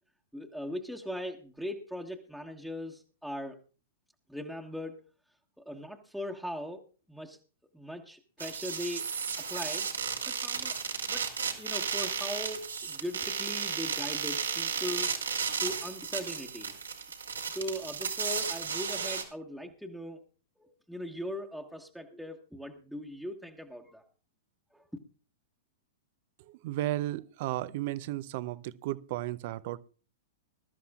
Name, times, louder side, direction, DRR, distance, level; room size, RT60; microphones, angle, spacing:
voice 1, 0.3-3.6 4.3-5.0 5.6-6.8 7.1-7.4 7.7-9.1 9.5-9.9 10.3-10.8 11.1-11.3 11.6-15.2 15.5-16.8 17.5-20.2 20.6-24.0 24.7-24.8, equal, ahead, 1.4 m, -39 dB
sound 1, 8.4-19.2, right 6 dB, 90° right, 3.0 m, -34 dB
voice 2, 26.5-29.8, right 15 dB, 55° right, 0.7 m, -34 dB
21.0 x 12.5 x 2.4 m
hypercardioid pair, 110°, 0 cm